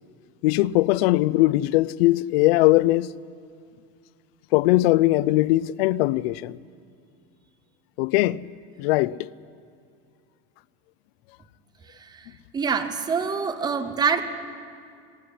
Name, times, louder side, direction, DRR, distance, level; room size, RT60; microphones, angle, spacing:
voice 1, 0.4-3.1 4.5-6.6 8.0-8.5 8.8-9.3, left 18 dB, 90° left, 0.5 m, -20 dB
voice 2, 12.5-14.2, right 5 dB, 15° right, 0.7 m, -25 dB
23.5 x 11.5 x 9.7 m
cardioid pair, 180°, 29 cm